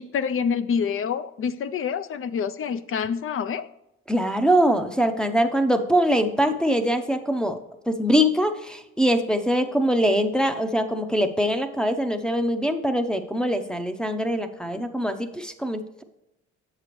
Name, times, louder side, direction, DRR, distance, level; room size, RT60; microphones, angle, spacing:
voice 1, 0.0-3.7, left 6 dB, 45° left, 13 dB, 0.5 m, -27 dB
voice 2, 4.1-7.6 7.9-16.0, equal, 5° left, 6 dB, 0.6 m, -23 dB
7.4 x 6.8 x 3.0 m, 0.90 s
cardioid pair, 90°, 30 cm